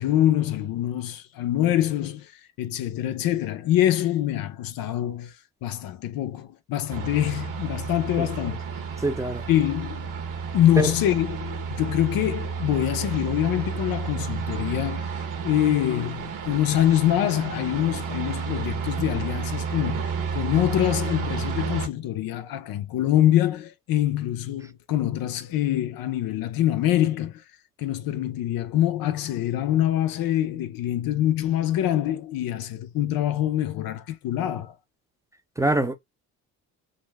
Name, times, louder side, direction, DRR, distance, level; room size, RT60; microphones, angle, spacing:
voice 1, 0.0-2.3 2.6-5.3 5.6-8.6 9.5-10.1 10.5-15.1 15.4-27.4 27.8-34.7, left 12 dB, 70° left, 0.6 m, -25 dB
sound 1, 6.9-21.9, right 6 dB, 60° right, 1.1 m, -31 dB
voice 2, 9.0-9.4 10.8-10.9 35.6-36.0, right 2 dB, 10° right, 0.6 m, -24 dB
2.6 x 2.1 x 3.3 m
supercardioid pair, 70°, 36 cm